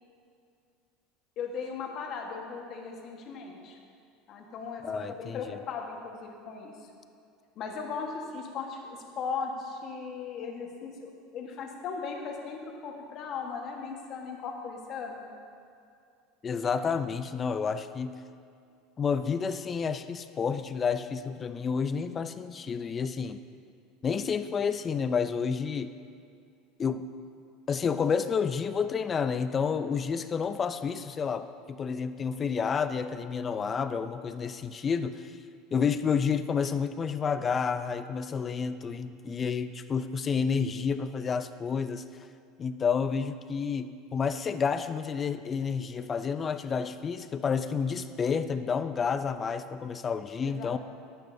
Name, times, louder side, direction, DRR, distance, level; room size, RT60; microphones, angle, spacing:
voice 1, 1.4-3.8 4.3-6.7 7.6-15.3 50.4-50.8, left 5 dB, 45° left, 1 dB, 1.3 m, -37 dB
voice 2, 4.8-5.6 16.4-18.2 19.0-23.4 24.0-25.9 26.8-27.0 27.7-35.3 35.7-42.0 42.6-50.8, left 6 dB, 25° left, 11 dB, 0.4 m, -30 dB
12.0 x 8.9 x 2.7 m, 2.4 s
supercardioid pair, 125°, 0 cm